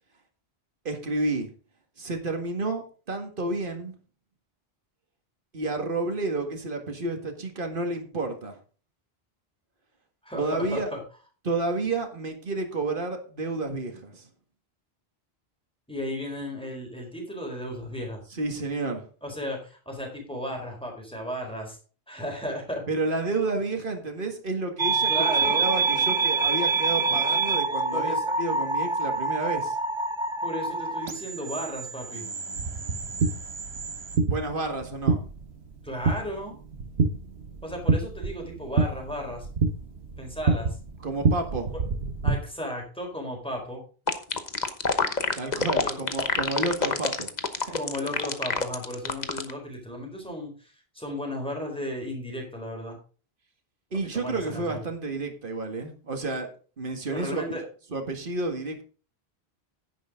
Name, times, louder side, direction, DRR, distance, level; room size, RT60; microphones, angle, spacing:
voice 1, 0.9-1.5 2.0-3.9 5.5-8.6 10.3-10.9 11.4-14.3 18.3-19.0 22.9-25.1 25.4-29.8 34.2-35.2 41.0-41.7 45.3-47.3 47.6-47.8 53.9-56.5 56.8-57.6 57.9-58.8, right 3 dB, 55° right, 4 dB, 2.0 m, -30 dB
voice 2, 10.2-11.0 15.9-18.2 19.2-21.8 22.1-22.8 25.1-25.6 27.9-28.2 30.4-32.3 35.8-36.6 37.6-39.5 40.2-40.8 42.2-43.8 45.8-45.9 47.8-53.0 54.1-54.8 57.1-57.6, left 1 dB, 5° left, 1 dB, 4.3 m, -34 dB
sound 1, 24.8-34.2, right 4 dB, 30° right, 0.9 m, -27 dB
sound 2, 32.6-42.4, right 4 dB, 80° right, 1.6 m, -28 dB
sound 3, 44.1-49.5, left 4 dB, 45° left, 1.2 m, -26 dB
10.5 x 10.0 x 3.7 m, 0.38 s
omnidirectional pair, 1.1 m